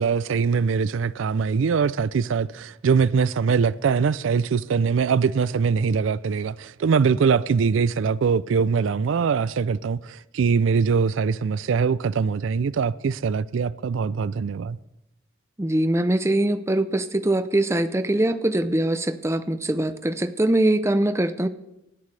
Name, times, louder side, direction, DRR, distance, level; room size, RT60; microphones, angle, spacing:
voice 1, 0.0-14.8, right 5 dB, 75° right, 0.4 m, -22 dB
voice 2, 15.6-21.5, right 1 dB, 15° right, 0.5 m, -22 dB
19.0 x 13.5 x 3.3 m
head